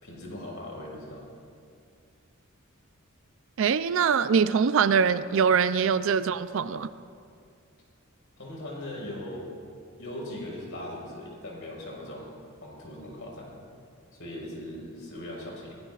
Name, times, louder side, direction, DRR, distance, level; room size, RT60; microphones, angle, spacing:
voice 1, 0.0-1.3 8.4-9.6 10.0-12.3 12.6-13.6 14.1-15.8, left 1 dB, 65° left, -2 dB, 4.6 m, -39 dB
voice 2, 3.6-6.9, right 6 dB, 65° right, 13 dB, 0.4 m, -23 dB
23.5 x 18.5 x 2.4 m, 2.3 s
head